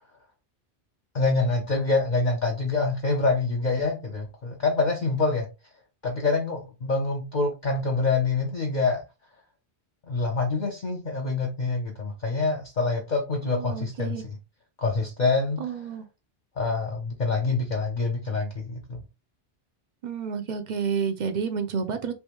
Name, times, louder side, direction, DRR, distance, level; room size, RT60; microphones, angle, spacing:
voice 1, 1.1-5.5 6.0-9.0 10.1-14.4 14.8-15.9 16.6-19.0, left 3 dB, 50° left, 0.7 m, -26 dB
voice 2, 13.5-14.2 15.6-16.0 20.0-22.1, right 6 dB, 55° right, 0.5 m, -30 dB
3.4 x 2.6 x 2.9 m
omnidirectional pair, 1.1 m